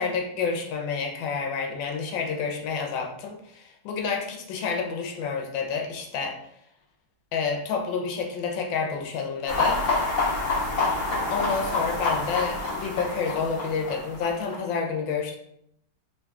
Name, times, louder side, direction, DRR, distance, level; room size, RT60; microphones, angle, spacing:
voice 1, 0.0-6.4 7.3-9.8 11.3-15.4, left 5 dB, 80° left, 2 dB, 1.4 m, -29 dB
sound 1, 9.5-14.6, left 3 dB, 45° left, 1.4 m, -27 dB
3.7 x 2.6 x 3.4 m, 0.74 s
omnidirectional pair, 2.0 m